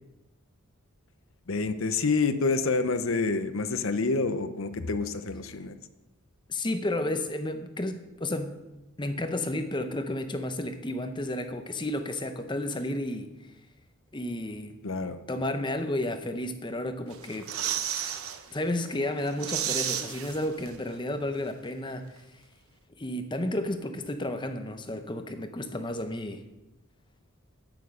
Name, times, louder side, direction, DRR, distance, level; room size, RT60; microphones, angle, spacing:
voice 1, 1.5-5.7 14.8-15.2, left 4 dB, 65° left, 11 dB, 0.7 m, -28 dB
voice 2, 6.5-8.5 9.0-13.3 14.1-14.8 15.3-17.5 18.5-22.2 23.0-26.4, left 1 dB, 20° left, 8 dB, 0.7 m, -32 dB
sound 1, 17.1-18.4 18.8-18.9 19.2-21.0 21.2-21.3, right 9 dB, 75° right, 0.9 m, -32 dB
9.4 x 9.2 x 6.2 m, 1.0 s
head